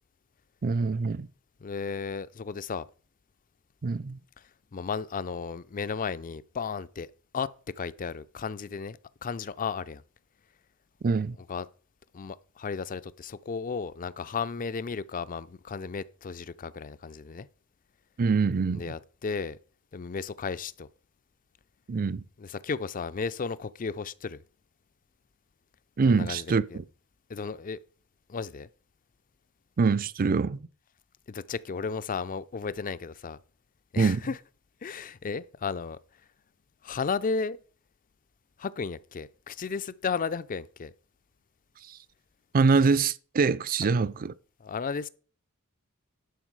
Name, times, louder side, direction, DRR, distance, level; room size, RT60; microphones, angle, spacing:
voice 1, 0.6-1.3 3.8-4.2 11.0-11.4 18.2-18.8 21.9-22.2 26.0-26.8 29.8-30.6 34.0-34.2 42.5-44.3, right 4 dB, 40° right, 0.4 m, -24 dB
voice 2, 1.6-2.9 4.4-7.1 7.3-7.5 7.7-10.0 11.5-11.7 12.1-17.5 18.7-19.6 19.9-20.9 22.4-24.4 26.0-26.8 27.3-27.8 28.3-28.7 31.3-33.4 33.9-34.4 34.8-36.0 36.8-37.6 38.6-40.9 44.6-45.1, left 5 dB, 40° left, 0.5 m, -34 dB
11.0 x 6.2 x 4.7 m
head